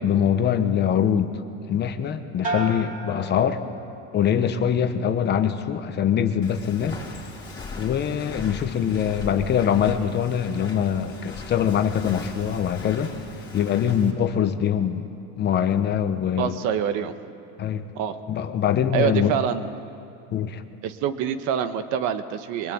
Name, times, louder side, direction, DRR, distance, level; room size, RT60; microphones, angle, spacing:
voice 1, 0.0-1.3 1.7-3.6 4.1-7.0 7.7-13.1 13.5-15.1 15.4-16.6 17.6-17.9 18.3-19.4 20.3-20.6, left 8 dB, 30° left, 8 dB, 1.1 m, -23 dB
sound 1, 2.4-4.2 4.6-5.2, right 1 dB, 25° right, 2.8 m, -33 dB
Walk footsteps, 6.4-14.1, left 3 dB, 15° left, 3.5 m, -39 dB
voice 2, 16.4-17.1 17.9-18.2 18.9-19.7 20.8-22.7, right 8 dB, 60° right, 10 dB, 1.5 m, -26 dB
23.5 x 23.0 x 8.8 m, 2.7 s
cardioid pair, 160°, 33 cm